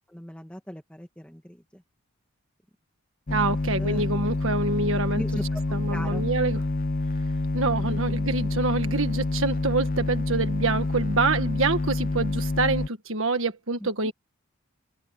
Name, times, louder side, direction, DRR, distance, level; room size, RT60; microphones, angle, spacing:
voice 1, 0.1-1.8 3.8-4.0 5.1-6.2 7.9-8.2 13.8-14.1, equal, 5° left, 2.0 m, -39 dB
sound 1, 3.3-12.9, left 2 dB, 40° left, 0.5 m, -27 dB
voice 2, 3.3-5.2 5.7-6.6 7.5-14.1, right 3 dB, 65° right, 1.6 m, -26 dB
head